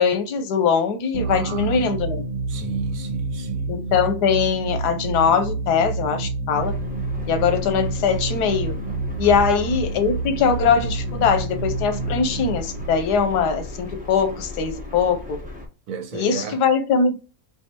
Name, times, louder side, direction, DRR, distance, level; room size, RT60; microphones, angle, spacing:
voice 1, 0.0-2.2 3.7-6.7 7.3-8.7 9.2-15.4 16.1-17.2, left 6 dB, 90° left, 1.3 m, -21 dB
sound 1, 1.1-14.4, right 3 dB, 80° right, 1.4 m, -29 dB
voice 2, 1.2-1.8 2.5-3.7 9.2-9.3 15.9-16.6, right 5 dB, 65° right, 1.0 m, -33 dB
sound 2, 6.5-15.7, left 1 dB, 5° right, 0.8 m, -36 dB
5.7 x 2.7 x 2.9 m
omnidirectional pair, 1.7 m